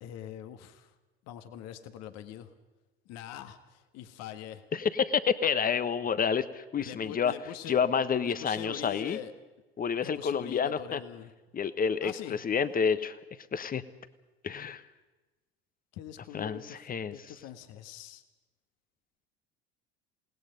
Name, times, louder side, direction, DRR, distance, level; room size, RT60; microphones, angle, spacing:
voice 1, 0.0-0.9 1.3-2.5 3.1-4.6 6.8-7.8 8.3-9.3 10.0-11.3 12.0-12.4 15.9-18.2, left 11 dB, 55° left, 9 dB, 1.8 m, -43 dB
voice 2, 4.7-7.3 7.7-9.2 9.8-11.0 11.5-13.2 13.5-13.8 14.4-14.8 16.3-17.1, left 6 dB, 25° left, 14 dB, 1.3 m, -29 dB
28.0 x 19.0 x 5.4 m, 1.1 s
figure-of-eight pair, 65°, 31 cm